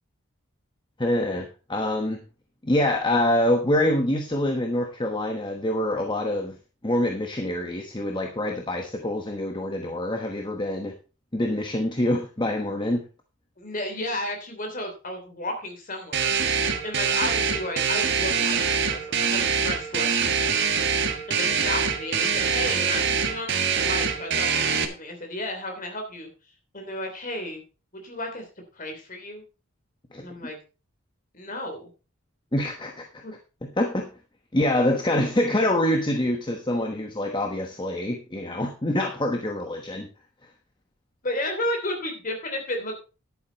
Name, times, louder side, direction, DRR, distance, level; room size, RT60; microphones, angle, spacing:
voice 1, 1.0-2.2 2.6-6.6 6.8-10.9 11.3-13.0 30.1-30.3 32.5-33.2 33.6-34.1 34.5-40.1, left 1 dB, 20° left, 4 dB, 1.1 m, -25 dB
voice 2, 13.6-16.3 16.8-20.8 21.3-26.3 26.7-27.6 27.9-28.4 28.7-29.4 30.2-30.6 31.3-31.9 33.2-33.3 38.5-38.6 41.2-43.0, left 1 dB, 40° left, 4 dB, 3.3 m, -33 dB
sound 1, 16.1-24.8, right 6 dB, 50° right, 1.6 m, -24 dB
11.0 x 9.1 x 4.1 m, 0.33 s
head